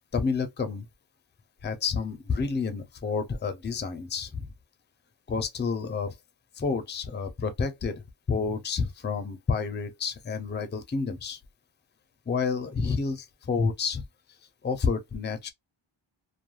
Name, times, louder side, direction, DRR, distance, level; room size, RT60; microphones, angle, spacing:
voice 1, 0.1-0.9 1.6-4.5 5.3-6.2 6.6-11.4 12.3-14.0 14.6-15.5, left 5 dB, 25° left, 0.4 m, -29 dB
2.3 x 2.2 x 3.0 m
wide cardioid pair, 105°, 49 cm